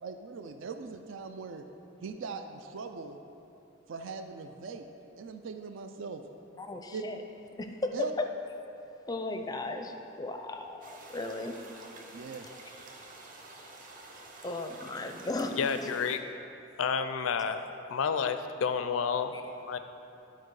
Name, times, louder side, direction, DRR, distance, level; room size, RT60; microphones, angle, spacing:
voice 1, 0.0-1.6 2.0-3.2 3.9-4.9 5.2-6.2 6.9-7.0 7.9-8.1 12.1-12.5, right 4 dB, 70° right, 7 dB, 0.4 m, -40 dB
voice 2, 6.6-7.2 7.6-8.3 9.1-11.6 14.4-15.6 19.3-19.4, left 2 dB, 20° left, 5 dB, 0.5 m, -35 dB
sound 1, 10.8-16.2, right 2 dB, 40° right, 0.8 m, -49 dB
voice 3, 15.6-16.2 16.8-19.8, left 6 dB, 85° left, 9 dB, 0.4 m, -30 dB
11.5 x 4.5 x 4.7 m, 2.8 s
head